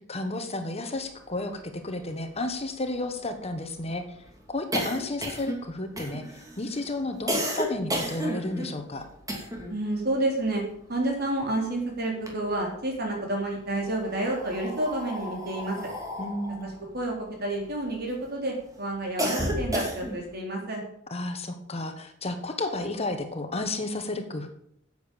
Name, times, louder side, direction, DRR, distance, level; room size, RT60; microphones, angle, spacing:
voice 1, 0.1-4.0 4.5-6.2 6.6-9.0 16.2-16.8 21.1-24.5, left 2 dB, 35° left, 6 dB, 1.4 m, -32 dB
sound 1, 1.6-1.7 1.9-2.0 2.3-9.8 10.1-11.7 12.0-13.0 13.7-18.2 18.6-20.3, equal, 20° right, 2.6 m, -33 dB
voice 2, 9.7-10.6 10.9-15.8 16.6-17.1 17.4-20.8, right 1 dB, 55° right, 0 dB, 4.2 m, -29 dB
10.0 x 8.1 x 7.2 m, 0.70 s
head